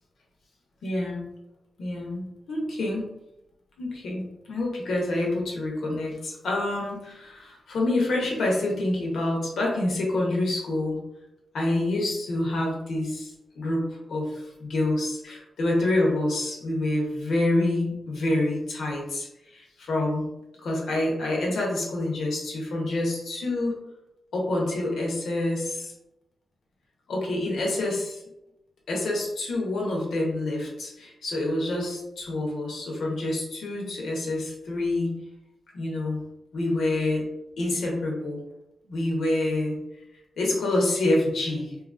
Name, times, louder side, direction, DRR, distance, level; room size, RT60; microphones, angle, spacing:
voice 1, 0.8-1.3 1.8-3.1 3.8-11.0 11.5-20.2 20.6-23.7 24.3-25.9 27.1-28.2 28.9-35.2 35.7-36.2 36.5-37.2 37.6-38.4 38.9-39.7 40.4-41.7, left 2 dB, 80° left, -1 dB, 0.8 m, -27 dB
2.7 x 2.3 x 2.5 m, 0.89 s
cardioid pair, 95°, 0 cm